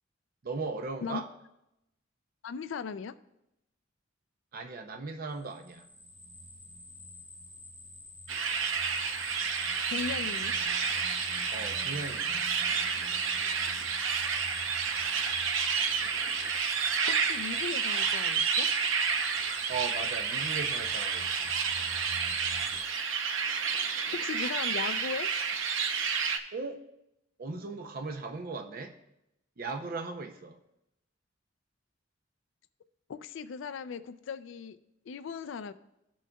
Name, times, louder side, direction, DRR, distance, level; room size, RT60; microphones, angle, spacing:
voice 1, 0.4-1.3 4.5-5.9 11.5-12.5 19.7-21.5 26.5-26.8 27.4-29.0 29.6-30.6, right 4 dB, 50° right, 5 dB, 0.6 m, -37 dB
voice 2, 2.4-3.1 9.9-10.5 17.1-18.7 24.1-25.3 33.1-34.8 35.1-35.7, left 6 dB, 75° left, 11 dB, 0.4 m, -37 dB
sound 1, 5.5-22.8, equal, 25° right, 1.4 m, -47 dB
sound 2, 8.3-26.4, right 6 dB, 85° right, 0.7 m, -30 dB
17.5 x 6.2 x 2.3 m, 0.88 s
head